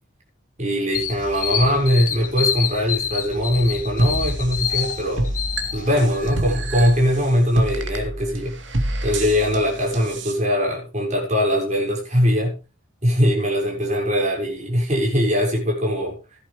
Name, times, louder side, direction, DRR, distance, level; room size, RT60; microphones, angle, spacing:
voice 1, 0.6-5.3 5.7-8.5 9.0-12.6 13.0-16.2, equal, 35° right, -1 dB, 6.5 m, -21 dB
sound 1, 0.9-6.3, left 8 dB, 40° left, 1.7 m, -28 dB
sound 2, 4.0-10.3, right 1 dB, 65° right, 2.6 m, -27 dB
16.5 x 11.0 x 3.6 m, 0.31 s
head